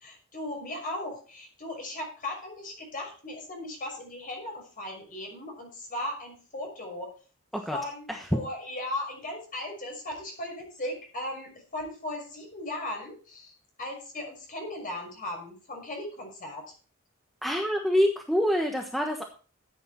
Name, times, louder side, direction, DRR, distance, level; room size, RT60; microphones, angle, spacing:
voice 1, 0.0-7.1 7.7-16.7, left 1 dB, 40° left, 1 dB, 5.9 m, -37 dB
voice 2, 17.4-19.2, equal, ahead, 2 dB, 1.2 m, -26 dB
14.0 x 8.3 x 4.4 m, 0.37 s
head